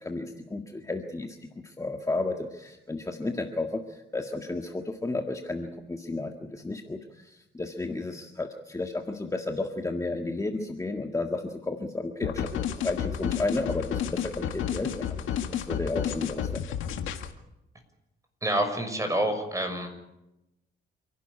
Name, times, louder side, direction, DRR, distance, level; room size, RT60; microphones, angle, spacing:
voice 1, 0.0-1.4 1.6-12.5 12.8-15.1 15.5-16.6, left 2 dB, 15° left, 3 dB, 1.8 m, -32 dB
sound 1, 12.2-17.3, left 9 dB, 85° left, 2.0 m, -31 dB
voice 2, 18.4-19.9, right 1 dB, 15° right, 6 dB, 6.4 m, -27 dB
28.0 x 12.0 x 9.9 m, 0.93 s
cardioid pair, 90°, 20 cm